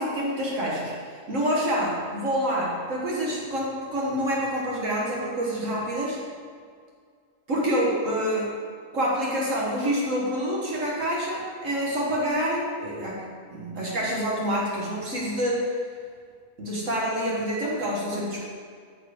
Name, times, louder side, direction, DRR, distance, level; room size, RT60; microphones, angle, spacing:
voice 1, 0.0-6.2 7.5-8.5 8.9-13.2 13.5-15.8 16.6-18.4, equal, 60° right, -4 dB, 1.7 m, -27 dB
14.0 x 4.7 x 5.0 m, 2.1 s
omnidirectional pair, 1.5 m